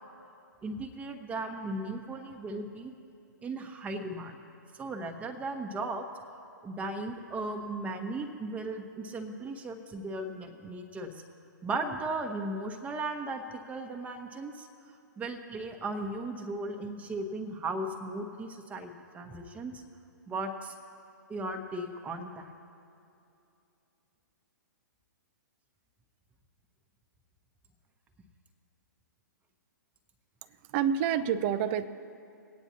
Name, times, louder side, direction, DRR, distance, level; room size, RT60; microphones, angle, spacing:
voice 1, 0.6-2.9 3.4-4.4 4.8-6.0 6.6-11.1 11.6-14.7 15.2-19.8 20.3-20.7 21.3-22.5, right 2 dB, 15° right, 3 dB, 1.1 m, -36 dB
voice 2, 30.7-31.9, right 8 dB, 35° right, 12 dB, 0.6 m, -27 dB
24.5 x 9.1 x 2.9 m, 2.7 s
figure-of-eight pair, 120°, 11 cm